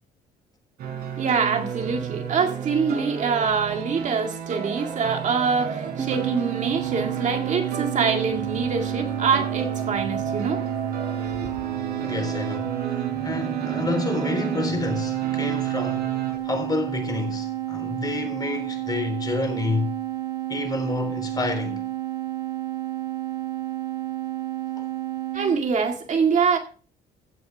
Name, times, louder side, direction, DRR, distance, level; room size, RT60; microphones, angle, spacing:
sound 1, 0.8-16.4, right 7 dB, 70° right, 4.8 m, -32 dB
voice 1, 1.2-11.5 25.3-26.6, right 5 dB, 45° right, 2.0 m, -25 dB
sound 2, 6.0-25.6, right 14 dB, 25° right, 1.7 m, -31 dB
voice 2, 12.0-19.9 20.5-21.8 24.8-24.9, left 3 dB, 25° left, 3.7 m, -29 dB
16.0 x 9.5 x 3.5 m
cardioid pair, 110°, 17 cm